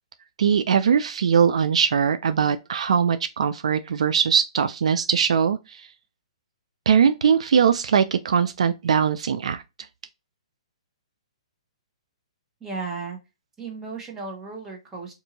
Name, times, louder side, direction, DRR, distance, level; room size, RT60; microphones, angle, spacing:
voice 1, 0.4-5.9 6.9-9.6, right 7 dB, 75° right, 0.3 m, -21 dB
voice 2, 12.6-13.2 13.6-15.1, right 4 dB, 15° right, 1.1 m, -34 dB
2.7 x 2.6 x 3.9 m
hypercardioid pair, 145°, 3 cm